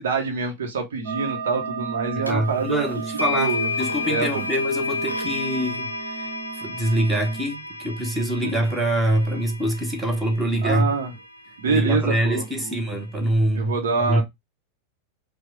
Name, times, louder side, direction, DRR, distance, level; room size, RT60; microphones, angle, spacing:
voice 1, 0.0-3.7 4.1-4.4 8.4-8.5 10.6-11.1 11.6-12.7 13.5-14.2, right 4 dB, 60° right, 1.1 m, -26 dB
sound 1, 1.1-7.4, right 5 dB, 35° right, 1.3 m, -35 dB
voice 2, 2.1-6.3 6.6-10.9 11.7-13.7 14.1-14.2, right 1 dB, 10° right, 1.2 m, -24 dB
sound 2, 2.3-2.4 3.2-11.2, left 3 dB, 90° right, 0.7 m, -30 dB
4.7 x 2.3 x 4.5 m
figure-of-eight pair, 90°, 0 cm